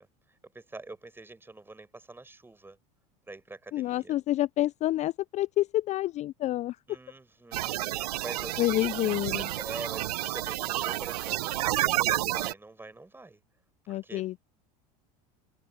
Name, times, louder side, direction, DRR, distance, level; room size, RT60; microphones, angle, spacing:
voice 1, 0.0-2.8 3.3-4.1 6.9-8.6 9.6-13.4 13.9-14.2, right 2 dB, 10° right, 6.3 m, -45 dB
voice 2, 3.7-7.0 8.6-9.5 13.9-14.4, left 15 dB, 35° left, 0.4 m, -28 dB
sound 1, 7.5-12.5, right 15 dB, 85° right, 0.7 m, -30 dB
hypercardioid pair, 95°, 19 cm